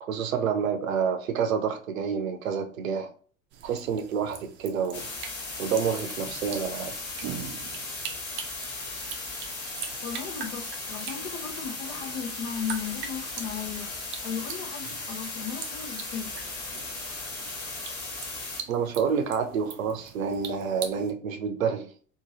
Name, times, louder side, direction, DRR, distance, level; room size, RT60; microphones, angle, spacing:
voice 1, 0.0-3.1 3.6-5.1 5.6-6.9 18.7-21.9, right 6 dB, 75° right, 0.6 m, -28 dB
sound 1, 3.5-21.1, right 8 dB, 30° right, 0.4 m, -43 dB
sound 2, 4.9-18.6, left 3 dB, 35° left, 1.3 m, -37 dB
voice 2, 10.0-13.9 14.2-16.7, left 7 dB, 65° left, 0.8 m, -36 dB
2.8 x 2.5 x 2.7 m
figure-of-eight pair, 75°, 41 cm